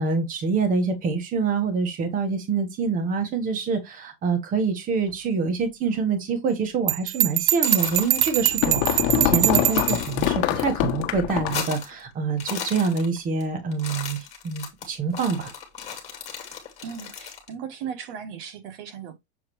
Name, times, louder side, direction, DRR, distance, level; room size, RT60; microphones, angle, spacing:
voice 1, 0.0-14.2 14.4-15.5, right 4 dB, 25° right, 1.5 m, -26 dB
Bell, 6.9-10.1, right 17 dB, 90° right, 0.5 m, -23 dB
sound 1, 7.3-8.6 8.9-9.0 9.3-10.6 11.0-12.0 12.3-13.4 13.7-17.5, left 7 dB, 20° left, 2.7 m, -36 dB
sound 2, 7.9-11.7, left 12 dB, 45° left, 1.2 m, -25 dB
voice 2, 16.8-19.2, right 7 dB, 60° right, 1.7 m, -37 dB
7.4 x 4.7 x 3.1 m
supercardioid pair, 155°, 33 cm